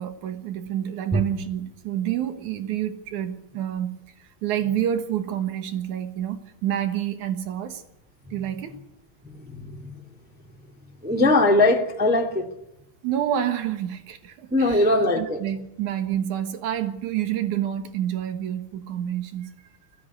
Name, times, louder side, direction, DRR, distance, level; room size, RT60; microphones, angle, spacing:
voice 1, 0.0-7.8 8.3-8.8 13.0-14.9 15.1-19.5, right 10 dB, 75° right, 9 dB, 1.8 m, -28 dB
voice 2, 9.5-9.8 11.0-12.4 14.5-15.4, left 2 dB, 10° right, 2 dB, 0.4 m, -20 dB
20.5 x 16.0 x 9.7 m, 0.85 s
omnidirectional pair, 5.6 m